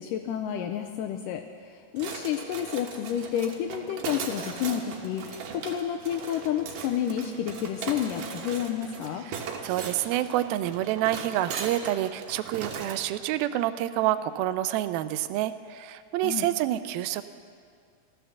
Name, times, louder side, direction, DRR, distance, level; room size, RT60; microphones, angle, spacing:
voice 1, 0.0-9.3 16.2-16.5, left 10 dB, 85° left, 5 dB, 1.9 m, -30 dB
sound 1, 2.0-13.1, right 6 dB, 65° right, 2.6 m, -38 dB
sound 2, 2.2-4.2 6.2-8.2, right 3 dB, 50° right, 2.6 m, -48 dB
voice 2, 9.3-17.2, right 13 dB, 85° right, 13 dB, 2.3 m, -28 dB
14.5 x 13.5 x 7.0 m, 2.1 s
omnidirectional pair, 4.4 m